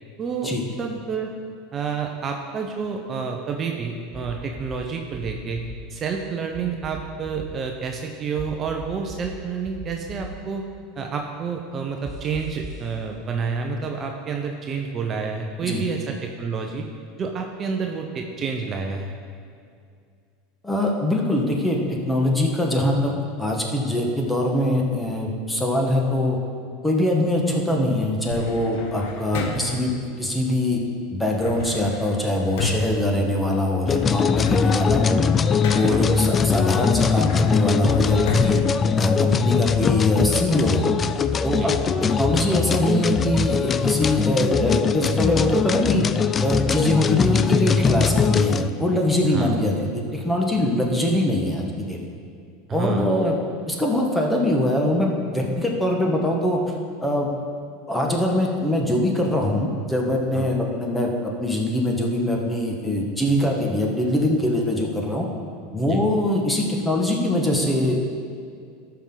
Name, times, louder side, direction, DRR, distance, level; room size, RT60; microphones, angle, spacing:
voice 1, 0.2-1.3 1.7-10.7 11.0-16.9 17.2-19.2 35.9-36.1 41.5-41.8 49.3-49.6 52.7-53.1 60.3-60.6 65.9-66.0, right 5 dB, 30° right, 2 dB, 0.8 m, -29 dB
sound 1, 4.1-4.8 5.1-5.8 6.5-7.5 8.4-9.3 9.6-10.3 12.0-12.8, equal, 10° right, 2.5 m, -38 dB
voice 2, 20.6-21.8 22.1-23.1 23.4-26.4 26.8-29.9 30.2-30.8 31.1-35.2 35.7-38.6 39.0-40.9 41.4-41.7 42.1-46.0 46.4-52.0 52.7-53.4 53.7-56.6 57.0-57.3 57.9-65.3 65.7-68.0, left 1 dB, 10° left, 0 dB, 1.4 m, -23 dB
sound 2, 28.3-29.9 31.4-33.8 34.2-36.1 36.7-39.7, left 5 dB, 70° left, 1.1 m, -33 dB
sound 3, 33.9-48.7, left 6 dB, 25° left, 0.3 m, -21 dB
13.5 x 5.8 x 4.0 m, 2.3 s
supercardioid pair, 110°, 0 cm